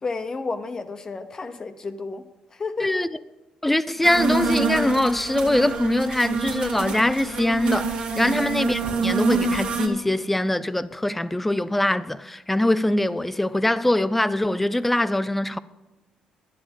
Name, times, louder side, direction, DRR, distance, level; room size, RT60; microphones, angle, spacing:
voice 1, 0.0-2.2 2.5-3.0 8.1-8.4, left 4 dB, 25° left, 0.8 m, -32 dB
voice 2, 3.6-15.6, left 1 dB, 5° left, 0.4 m, -23 dB
sound 1, 4.0-9.9, right 4 dB, 55° right, 1.7 m, -26 dB
11.0 x 10.0 x 5.3 m
cardioid pair, 130°, 2 cm